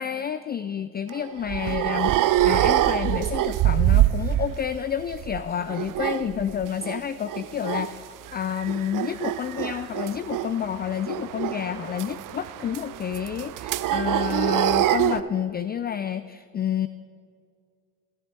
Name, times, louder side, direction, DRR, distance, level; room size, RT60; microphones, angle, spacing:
voice 1, 0.0-8.0 8.3-16.9, left 8 dB, 20° left, 13 dB, 0.4 m, -29 dB
sound 1, 1.1-4.7 5.0-7.0 7.3-7.9 8.3-15.2, right 13 dB, 40° right, 0.6 m, -25 dB
13.0 x 11.0 x 6.8 m, 2.1 s
hypercardioid pair, 55°, 49 cm